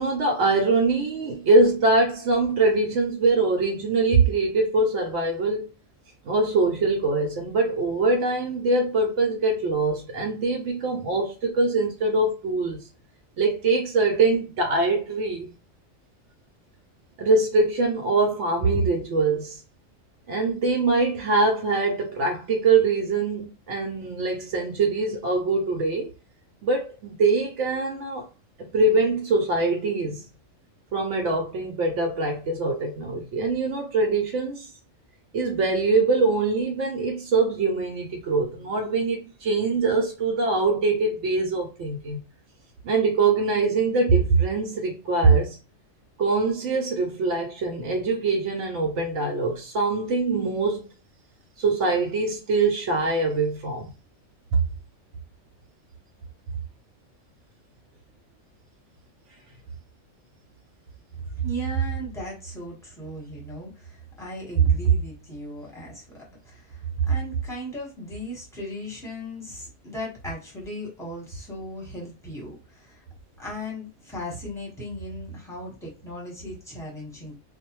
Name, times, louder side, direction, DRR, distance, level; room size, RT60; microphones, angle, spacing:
voice 1, 0.0-5.7 6.2-12.9 13.4-15.5 17.2-19.6 20.3-26.1 26.6-28.3 28.6-30.3 30.9-34.7 35.3-42.2 42.8-45.6 46.2-50.9 51.6-53.9 54.5-54.6, right 3 dB, 70° right, 0.9 m, -23 dB
voice 2, 61.4-73.0 73.4-77.4, right 5 dB, 5° left, 1.0 m, -31 dB
2.5 x 2.1 x 2.9 m
omnidirectional pair, 1.3 m